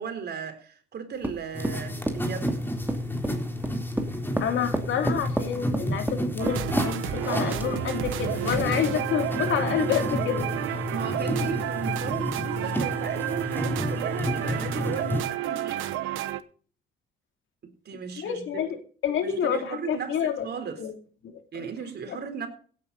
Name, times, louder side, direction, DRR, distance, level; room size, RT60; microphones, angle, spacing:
voice 1, 0.0-2.5 8.5-8.6 10.9-15.9 17.6-18.4 19.2-20.8 21.5-22.5, right 6 dB, 55° right, 3.9 m, -36 dB
sound 1, 1.2-8.0, right 1 dB, 10° right, 2.5 m, -31 dB
sound 2, 1.5-15.2, left 1 dB, 10° left, 3.8 m, -31 dB
voice 2, 4.4-10.5 18.2-18.8 19.0-20.5 20.8-20.9 21.2-21.3 21.6-21.7, left 8 dB, 75° left, 3.0 m, -28 dB
sound 3, 6.4-16.4, right 13 dB, 90° right, 1.0 m, -31 dB
16.5 x 9.7 x 4.1 m
cardioid pair, 90°, 20 cm